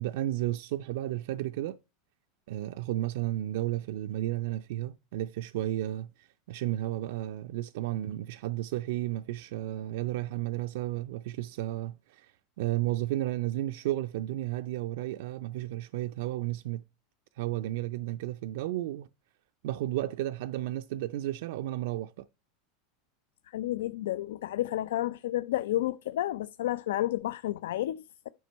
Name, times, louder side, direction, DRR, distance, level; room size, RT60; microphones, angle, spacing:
voice 1, 0.0-1.8 2.5-16.8 17.4-19.1 19.6-22.3, right 15 dB, 75° right, 0.4 m, -33 dB
voice 2, 23.5-28.3, left 14 dB, 85° left, 0.4 m, -31 dB
9.3 x 5.2 x 4.5 m
supercardioid pair, 130°, 0 cm